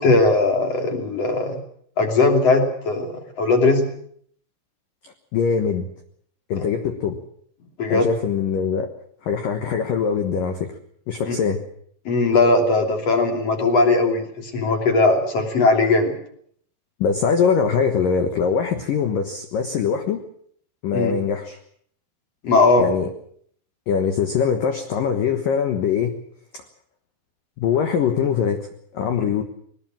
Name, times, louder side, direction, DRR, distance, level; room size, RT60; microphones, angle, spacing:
voice 1, 0.0-1.6 2.0-3.9 6.5-6.6 7.8-8.1 11.3-11.4 12.0-16.1 20.9-21.1 22.4-22.9 29.1-29.2, left 3 dB, 35° left, 4 dB, 3.2 m, -19 dB
voice 2, 5.0-5.9 6.5-7.2 7.9-8.9 9.2-10.7 11.1-11.6 17.0-20.2 20.8-21.6 22.8-23.1 23.9-26.2 26.5-26.6 27.6-29.4, left 6 dB, 70° left, 6 dB, 2.1 m, -22 dB
21.5 x 19.5 x 7.6 m, 0.63 s
omnidirectional pair, 6.0 m